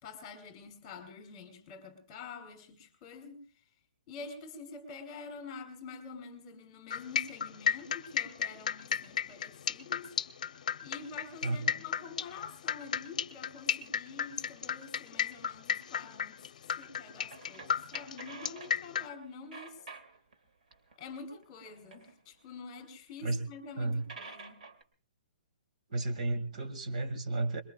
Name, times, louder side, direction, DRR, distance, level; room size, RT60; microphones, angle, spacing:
voice 1, 0.0-3.4 4.1-10.1 10.8-16.5 16.8-19.8 21.0-24.7, left 4 dB, 20° left, 3.1 m, -47 dB
sound 1, 6.9-19.1, left 8 dB, 65° left, 0.7 m, -33 dB
voice 2, 11.4-11.8 23.2-23.4 23.8-24.0 25.9-27.6, right 2 dB, 60° right, 2.0 m, -33 dB
sound 2, 17.2-18.8 19.1-20.3 20.6-22.5 23.2-23.3 23.6-23.7 24.0-24.8, right 4 dB, 75° right, 2.5 m, -50 dB
26.0 x 22.0 x 2.3 m
hypercardioid pair, 170°, 4 cm